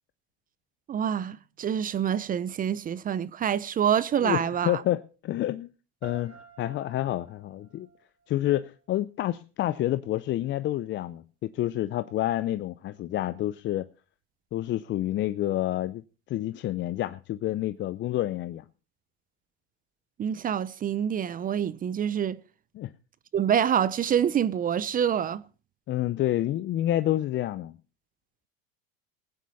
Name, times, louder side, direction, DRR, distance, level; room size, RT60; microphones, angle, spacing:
voice 1, 0.9-4.8 20.2-22.4 23.3-25.4, right 9 dB, 30° right, 0.6 m, -26 dB
voice 2, 4.2-5.7 6.0-7.9 8.3-13.9 14.5-16.0 16.3-18.6 22.7-22.9 25.9-27.8, left 14 dB, 40° left, 0.6 m, -29 dB
sound 1, 6.0-9.0, right 5 dB, 50° right, 3.3 m, -51 dB
20.0 x 9.3 x 4.1 m
hypercardioid pair, 95°, 31 cm